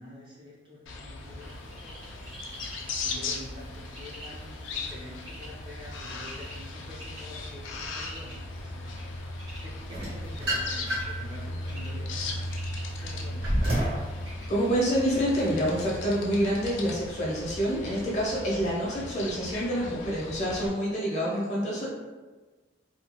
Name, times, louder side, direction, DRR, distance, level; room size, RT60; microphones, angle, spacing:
voice 1, 0.0-2.4 3.0-9.3 9.6-12.5 13.0-13.6, left 1 dB, 25° right, -6 dB, 0.5 m, -47 dB
sound 1, 0.9-20.7, left 2 dB, 80° left, 0.4 m, -37 dB
Bird, 1.2-18.9, equal, 85° right, 1.2 m, -49 dB
sound 2, 9.9-11.3 11.8-14.1, equal, 50° right, 1.0 m, -29 dB
voice 2, 14.5-21.9, equal, 35° left, -5 dB, 0.7 m, -27 dB
2.8 x 2.3 x 2.9 m, 1.3 s
head